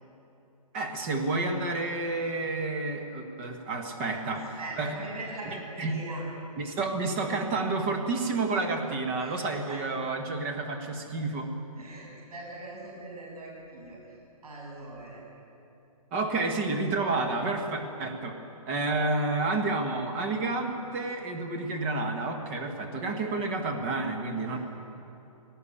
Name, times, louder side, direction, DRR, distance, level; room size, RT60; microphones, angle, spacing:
voice 1, 0.7-4.4 4.8-5.0 5.8-5.9 6.6-11.5 16.1-18.4 18.7-24.6, right 3 dB, 20° right, 5 dB, 1.3 m, -30 dB
voice 2, 4.2-6.2 9.2-10.0 11.8-15.2 24.4-24.6, right 2 dB, 80° right, -3 dB, 7.0 m, -42 dB
19.0 x 18.0 x 8.6 m, 2.9 s
hypercardioid pair, 175°, 19 cm